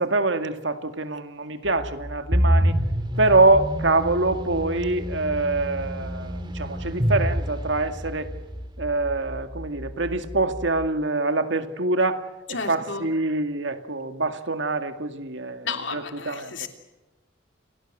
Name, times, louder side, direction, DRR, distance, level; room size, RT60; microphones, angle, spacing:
voice 1, 0.0-2.8 3.2-8.3 8.8-16.7, right 2 dB, 70° right, 8 dB, 2.0 m, -25 dB
sound 1, 1.6-10.9, equal, 20° left, 3.8 m, -39 dB
sound 2, 2.3-8.3, equal, 25° right, 2.4 m, -26 dB
voice 2, 12.5-13.1 15.6-16.7, left 5 dB, 75° left, 5 dB, 3.3 m, -32 dB
29.0 x 18.5 x 7.8 m, 1.1 s
head